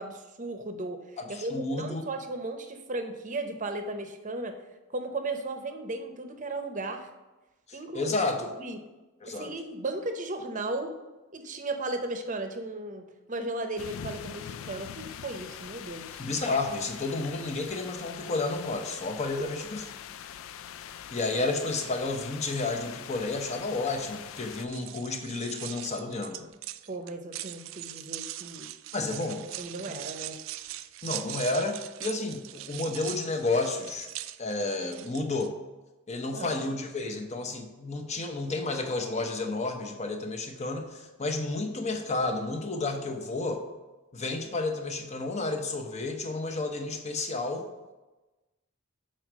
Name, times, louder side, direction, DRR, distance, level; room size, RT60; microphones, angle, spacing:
voice 1, 0.0-4.5 4.9-7.1 7.7-8.1 8.6-8.8 9.3-11.0 11.3-16.2 19.4-19.5 26.9-28.7 29.6-30.4 36.3-36.6, right 2 dB, 40° right, 7 dB, 0.7 m, -35 dB
voice 2, 1.2-2.1 7.7-8.6 9.2-9.5 16.2-19.9 21.1-26.5 28.9-29.5 29.8-30.0 31.0-34.1 34.4-35.5 36.1-43.6 44.1-47.7, left 3 dB, 35° left, 5 dB, 0.8 m, -31 dB
sound 1, 13.8-24.7, left 9 dB, 70° left, 0.3 m, -43 dB
sound 2, 24.3-35.5, right 14 dB, 65° right, 0.3 m, -41 dB
6.4 x 4.4 x 6.1 m, 1.1 s
head